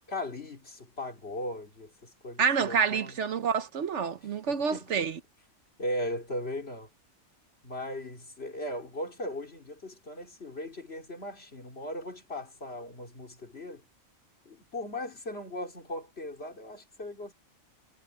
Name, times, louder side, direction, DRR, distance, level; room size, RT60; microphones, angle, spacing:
voice 1, 0.1-3.2 4.5-5.1 5.8-6.9 7.6-13.8 14.5-17.3, left 1 dB, 50° left, 3.5 m, -38 dB
voice 2, 2.4-5.1, right 6 dB, 65° right, 1.1 m, -28 dB
omnidirectional pair, 1.4 m